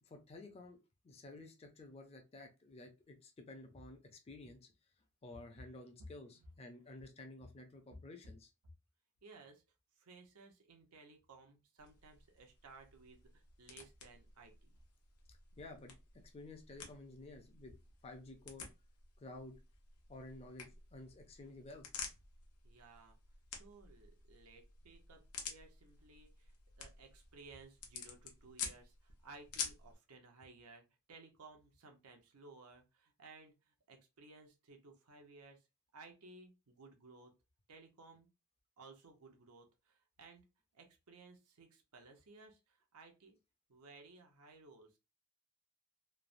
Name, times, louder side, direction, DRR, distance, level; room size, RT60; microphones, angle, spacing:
voice 1, 0.0-0.8 1.0-4.7 5.2-8.5 15.6-17.7 18.0-18.7 19.2-19.6 20.1-21.9, left 2 dB, 25° left, 3 dB, 0.4 m, -53 dB
voice 2, 9.2-9.6 10.0-14.7 22.6-23.2 23.5-35.7 35.9-37.3 37.7-38.3 38.8-40.4 40.7-43.4 43.7-45.0, right 3 dB, 85° right, 3 dB, 0.7 m, -59 dB
sound 1, 11.8-29.9, left 6 dB, 80° left, 0.7 m, -51 dB
3.2 x 2.0 x 2.5 m, 0.26 s
head